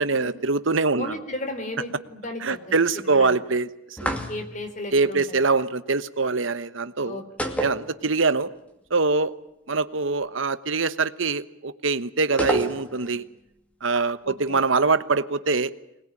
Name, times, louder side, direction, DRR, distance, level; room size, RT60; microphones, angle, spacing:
voice 1, 0.0-1.1 2.4-4.2 4.9-7.2 7.6-8.5 8.9-9.3 9.7-13.2 13.8-15.7, right 4 dB, 70° right, 13 dB, 1.2 m, -23 dB
voice 2, 1.0-2.6 2.9-3.4 4.0-5.4 7.0-7.6 14.2-14.6, left 1 dB, 35° left, 8 dB, 3.6 m, -35 dB
sound 1, 4.0-4.7 7.4-8.4 8.7-8.8 12.4-13.2, equal, 5° left, 2.3 m, -29 dB
25.0 x 20.5 x 9.9 m, 0.82 s
head